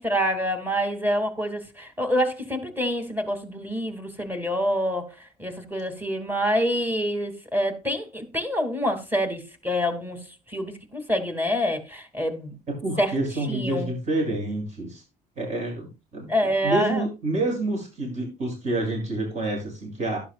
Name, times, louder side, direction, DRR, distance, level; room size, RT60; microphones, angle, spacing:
voice 1, 0.0-5.1 5.4-10.2 10.5-12.5 13.0-13.1 13.5-13.9 16.3-17.0, equal, 10° right, 2.7 m, -26 dB
voice 2, 12.8-15.0 15.4-20.2, right 2 dB, 45° right, 7.8 m, -28 dB
12.0 x 11.5 x 2.5 m
cardioid pair, 110°, 17 cm